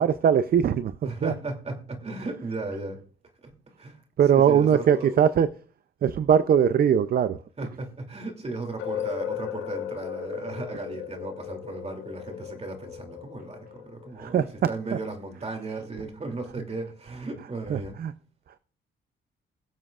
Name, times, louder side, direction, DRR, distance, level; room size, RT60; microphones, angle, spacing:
voice 1, 0.0-0.9 1.2-1.3 4.2-5.5 6.0-7.4 14.2-14.5 17.7-18.1, right 8 dB, 50° right, 0.5 m, -21 dB
voice 2, 1.0-3.0 3.4-3.5 3.8-4.0 4.3-5.1 7.6-18.0, right 3 dB, 30° right, 2.8 m, -36 dB
sound 1, 8.8-14.7, left 10 dB, 80° left, 1.3 m, -36 dB
21.5 x 7.5 x 2.4 m
cardioid pair, 90°, 20 cm